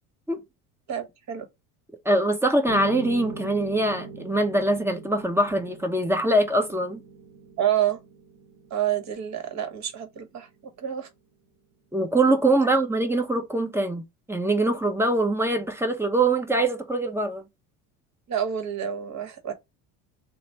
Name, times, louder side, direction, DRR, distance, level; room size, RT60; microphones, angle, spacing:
voice 1, 0.9-1.5 7.6-8.0 8.7-10.5 10.8-11.1 12.6-12.8 18.3-19.5, right 10 dB, 40° right, 1.0 m, -28 dB
voice 2, 2.0-7.0 11.9-14.0 14.3-17.4, right 2 dB, 5° right, 0.7 m, -23 dB
Piano, 2.7-10.7, right 5 dB, 65° right, 0.7 m, -42 dB
3.1 x 2.1 x 4.2 m
hypercardioid pair, 85°, 43 cm